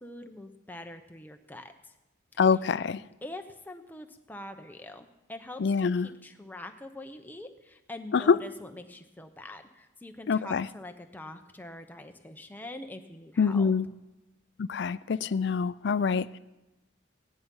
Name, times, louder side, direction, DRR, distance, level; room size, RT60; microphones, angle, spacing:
voice 1, 0.0-1.9 2.3-2.4 3.2-13.7, left 1 dB, 10° left, 0.8 m, -44 dB
voice 2, 2.4-3.0 5.6-6.1 8.1-8.4 10.3-10.7 13.4-13.9 14.6-16.4, left 5 dB, 60° left, 0.4 m, -25 dB
16.5 x 10.5 x 5.5 m
head